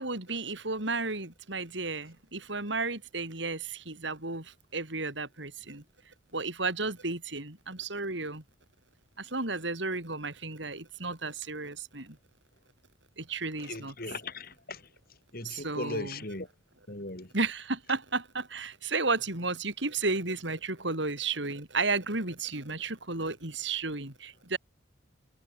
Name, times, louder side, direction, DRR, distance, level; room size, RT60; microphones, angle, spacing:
voice 1, 0.0-5.8 6.3-8.4 9.2-12.2 13.2-13.9 15.4-16.2 17.3-24.6, right 3 dB, 65° right, 4.5 m, -33 dB
voice 2, 13.6-14.9 15.3-16.5 16.9-17.3, left 2 dB, 50° left, 4.5 m, -38 dB
head